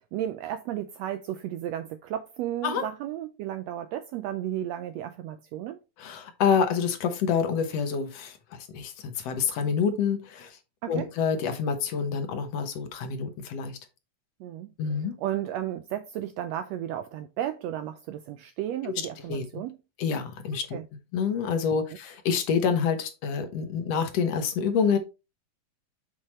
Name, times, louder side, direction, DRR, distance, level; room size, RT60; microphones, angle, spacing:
voice 1, 0.0-5.8 10.8-11.1 14.4-19.8 20.7-20.9, right 11 dB, 80° right, 1.5 m, -34 dB
voice 2, 6.0-10.6 10.9-13.8 14.8-15.1 18.8-19.6 20.0-20.8 21.1-25.0, left 6 dB, 65° left, 1.9 m, -27 dB
7.4 x 4.9 x 3.1 m
omnidirectional pair, 3.4 m